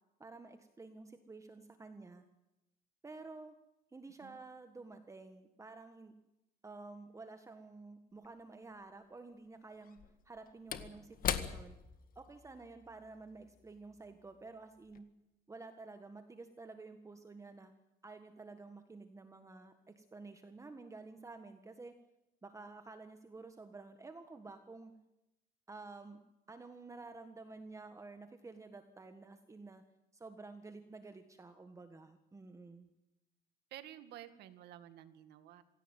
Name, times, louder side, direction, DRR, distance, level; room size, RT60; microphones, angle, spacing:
voice 1, 0.2-2.2 3.0-3.5 3.9-6.1 6.6-10.0 10.2-11.8 12.1-15.1 15.5-17.7 18.0-22.0 22.4-24.9 25.7-26.2 26.5-29.8 30.1-32.9, right 3 dB, 20° right, 7 dB, 1.6 m, -51 dB
Slam / Wood, 8.2-8.3 9.8-14.5 14.8-15.0, left 9 dB, 55° left, 1.9 m, -42 dB
voice 2, 33.7-35.6, right 12 dB, 80° right, 10 dB, 2.1 m, -52 dB
25.0 x 16.5 x 9.1 m, 0.94 s
cardioid pair, 110°, 17 cm